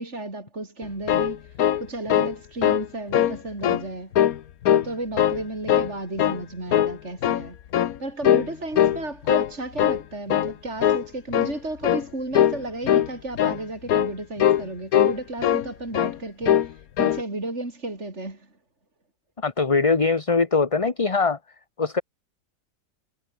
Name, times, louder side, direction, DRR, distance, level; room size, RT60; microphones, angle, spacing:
voice 1, 0.0-4.1 4.7-7.6 8.0-18.6, right 2 dB, 45° right, 5.3 m, -33 dB
sound 1, 0.8-2.4 2.6-2.9 3.1-3.8 4.1-4.9 5.2-5.9 6.2-6.4 6.7-7.5 7.7-8.0 8.2-8.5 8.8-9.5 9.8-10.0 10.3-10.5 10.8-11.1 11.3-11.6 11.8-12.1 12.3-12.6 12.8-13.1 13.4-13.6 13.9-14.1 14.4-14.6 14.9-15.7 15.9-16.2 16.4-16.7 17.0-17.2, left 11 dB, 65° left, 1.3 m, -21 dB
voice 2, 19.4-21.4 21.8-22.0, left 4 dB, 25° left, 1.1 m, -21 dB
omnidirectional pair, 1.7 m